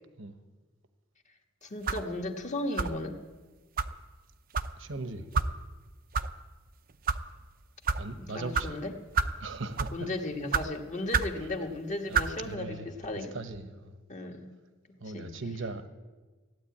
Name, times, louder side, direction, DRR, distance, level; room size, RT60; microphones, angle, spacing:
voice 1, 1.6-3.2 8.2-8.9 9.9-13.3 14.1-14.5 15.1-15.3, left 2 dB, 35° left, 3 dB, 1.5 m, -35 dB
sound 1, 1.9-2.1 2.8-3.1 3.8-3.9 4.5-4.7 5.3-5.5 6.1-6.3 6.9-7.2 7.9-8.0 8.5-8.7 9.2-9.4 9.8-10.0 10.5-10.7 11.1-11.4 12.1-12.3, right 5 dB, 45° right, 0.6 m, -28 dB
voice 2, 4.8-5.3 8.0-8.7 9.4-10.1 11.4-11.5 12.1-12.9 13.2-13.9 15.0-15.8, right 3 dB, 70° right, 9 dB, 1.1 m, -39 dB
15.5 x 9.5 x 8.5 m, 1.3 s
head